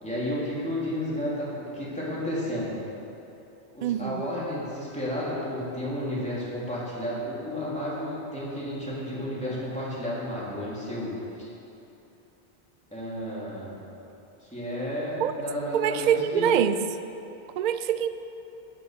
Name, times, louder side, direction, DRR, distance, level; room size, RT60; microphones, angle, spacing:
voice 1, 0.0-2.8 3.7-11.1 11.4-11.5 12.9-13.8 14.4-16.5, equal, 5° left, -8 dB, 3.2 m, -32 dB
voice 2, 3.8-4.2 15.2-15.3 15.7-16.8 17.6-18.1, right 9 dB, 55° right, 11 dB, 0.6 m, -24 dB
13.0 x 7.9 x 6.6 m, 2.9 s
omnidirectional pair, 1.0 m